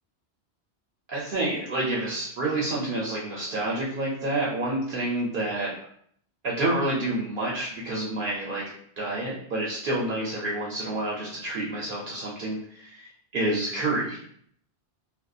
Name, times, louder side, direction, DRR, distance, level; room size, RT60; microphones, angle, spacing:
voice 1, 1.1-5.7 6.4-8.6 9.0-13.1 13.3-14.2, right 2 dB, 60° right, -5 dB, 0.7 m, -28 dB
2.6 x 2.0 x 2.3 m, 0.64 s
omnidirectional pair, 1.1 m